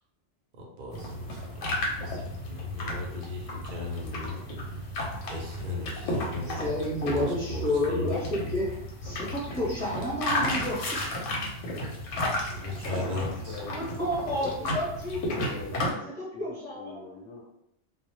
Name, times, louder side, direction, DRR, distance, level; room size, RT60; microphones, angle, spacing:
voice 1, 0.6-5.0 5.3-6.7 7.1-8.1 12.6-13.6, left 2 dB, 60° right, 0 dB, 0.5 m, -37 dB
sound 1, 0.9-15.9, left 1 dB, 90° left, 0.9 m, -33 dB
voice 2, 6.3-8.7 9.0-10.8 13.7-15.8 16.2-17.2, left 1 dB, 10° left, -9 dB, 0.5 m, -31 dB
voice 3, 12.9-14.7 15.5-16.4 16.7-17.4, left 3 dB, 65° left, -3 dB, 0.7 m, -44 dB
2.0 x 2.0 x 3.0 m, 0.78 s
omnidirectional pair, 1.2 m